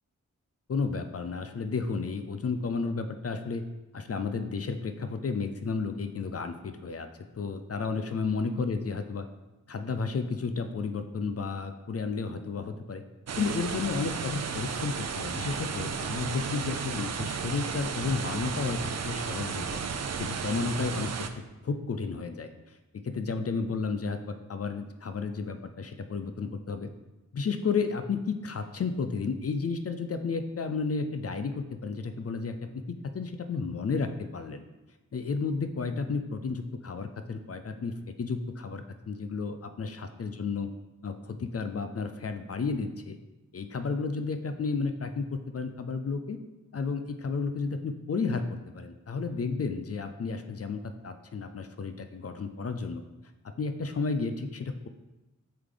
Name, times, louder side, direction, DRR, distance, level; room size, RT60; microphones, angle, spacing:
voice 1, 0.7-3.6 3.9-7.1 7.3-9.3 9.7-13.0 13.4-19.8 20.2-22.7 23.0-24.2 24.5-26.9 27.3-34.6 35.1-40.7 41.0-43.2 43.5-46.4 46.7-48.5 48.7-53.0 53.6-54.9, left 4 dB, 50° left, 8 dB, 0.5 m, -32 dB
sound 1, 13.3-21.3, right 6 dB, 55° right, 0.5 m, -33 dB
8.0 x 3.4 x 3.8 m, 1.1 s
wide cardioid pair, 100°, 31 cm